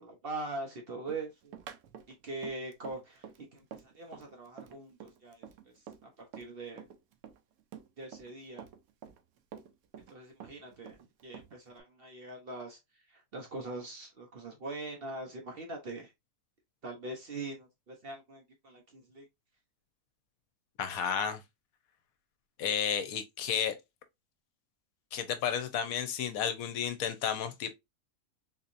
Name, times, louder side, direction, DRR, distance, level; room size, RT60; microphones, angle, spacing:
voice 1, 0.0-1.5 2.1-5.7 6.0-6.9 8.0-8.6 10.1-11.0 11.2-12.8 13.1-16.1 16.8-19.3, right 2 dB, 50° right, 0.8 m, -42 dB
Run, 1.1-6.5 6.8-8.3 8.6-10.1 10.4-11.8, right 8 dB, 75° right, 1.0 m, -48 dB
voice 2, 20.8-21.4 22.6-23.8 25.1-27.7, left 8 dB, 75° left, 1.1 m, -32 dB
3.8 x 2.8 x 2.5 m
omnidirectional pair, 1.5 m